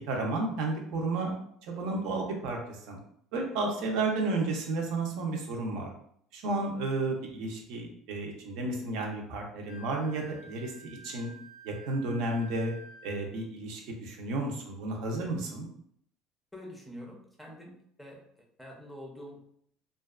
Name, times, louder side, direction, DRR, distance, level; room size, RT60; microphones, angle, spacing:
voice 1, 0.1-3.0 3.3-5.9 6.3-11.3 11.6-12.7 13.0-15.7, right 2 dB, 70° right, 1 dB, 0.6 m, -32 dB
Wind instrument woodwind instrument, 9.6-13.4, right 2 dB, 60° left, 0.3 m, -51 dB
voice 2, 16.5-18.2 18.6-19.4, equal, 5° left, -1 dB, 0.5 m, -46 dB
2.5 x 2.3 x 2.3 m, 0.67 s
cardioid pair, 140°, 0 cm